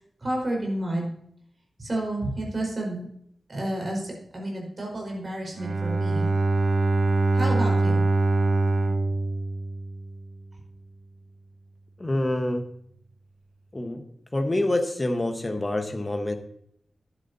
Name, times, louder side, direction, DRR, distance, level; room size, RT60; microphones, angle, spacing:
voice 1, 0.2-1.1 1.8-3.1 3.5-6.3 7.3-8.0, right 1 dB, 35° right, -1 dB, 4.8 m, -30 dB
Bowed string instrument, 5.5-10.3, right 2 dB, 55° right, 0.9 m, -24 dB
voice 2, 12.0-12.7 13.7-14.0 14.3-16.4, left 1 dB, 25° left, 6 dB, 1.2 m, -26 dB
12.5 x 10.5 x 2.8 m, 0.68 s
wide cardioid pair, 130°, 0 cm